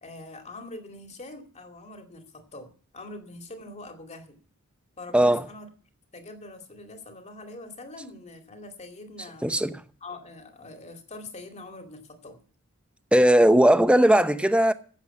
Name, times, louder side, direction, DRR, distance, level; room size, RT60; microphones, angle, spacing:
voice 1, 0.0-4.4 5.0-5.7 6.1-9.5 10.0-12.4, left 2 dB, 30° left, 2.4 m, -43 dB
voice 2, 5.1-5.5 9.4-9.7 13.1-14.7, right 1 dB, 5° right, 0.8 m, -18 dB
14.5 x 8.4 x 7.1 m
head